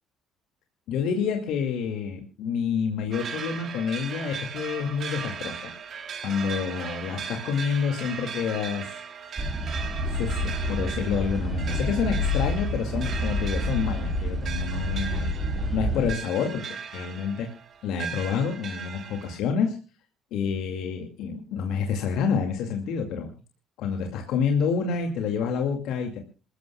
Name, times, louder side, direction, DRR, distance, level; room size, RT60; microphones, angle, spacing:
voice 1, 0.9-5.7 6.2-8.9 10.0-15.3 15.7-17.5 17.8-19.8 20.3-23.3 23.8-26.2, left 6 dB, 70° left, 4 dB, 2.3 m, -28 dB
sound 1, 3.1-19.4, right 7 dB, 55° right, 2.7 m, -38 dB
sound 2, 9.4-16.1, left 1 dB, 30° right, 4.0 m, -28 dB
27.5 x 14.5 x 2.3 m, 0.35 s
hypercardioid pair, 60°, 0 cm